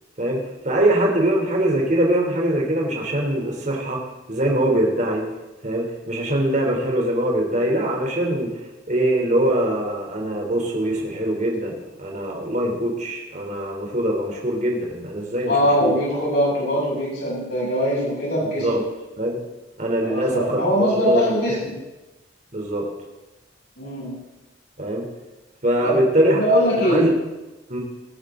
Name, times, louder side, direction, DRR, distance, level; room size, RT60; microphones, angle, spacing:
voice 1, 0.2-4.0 4.3-5.3 5.6-8.5 8.9-11.7 12.0-15.5 15.8-16.0 18.6-18.8 19.2-19.4 19.8-21.2 22.5-22.9 24.8-25.1 25.6-26.4 26.8-27.1 27.7-27.8, right 1 dB, 45° right, 0 dB, 3.4 m, -22 dB
voice 2, 15.4-18.8 20.0-21.8 23.8-24.2 25.8-26.0 26.3-27.1, equal, 70° left, -5 dB, 6.8 m, -22 dB
18.5 x 14.0 x 3.8 m, 1.0 s
head